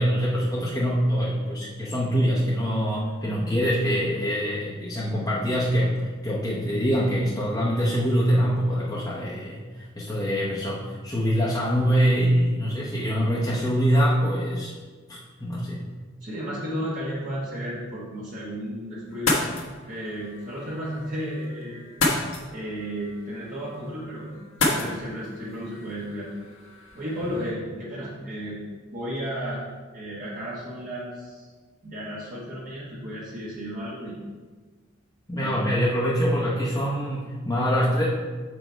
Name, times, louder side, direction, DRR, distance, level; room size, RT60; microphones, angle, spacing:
voice 1, 0.0-14.7 15.1-15.8 35.3-38.1, equal, 15° left, -7 dB, 0.8 m, -24 dB
voice 2, 16.2-19.4 19.8-21.8 22.5-26.3 26.9-28.6 28.9-29.6 29.9-31.5 31.8-34.2 35.3-35.6, equal, 45° right, -7 dB, 1.2 m, -33 dB
sound 1, 19.1-27.5, left 2 dB, 70° left, 1.2 m, -31 dB
6.7 x 5.0 x 4.5 m, 1.4 s
head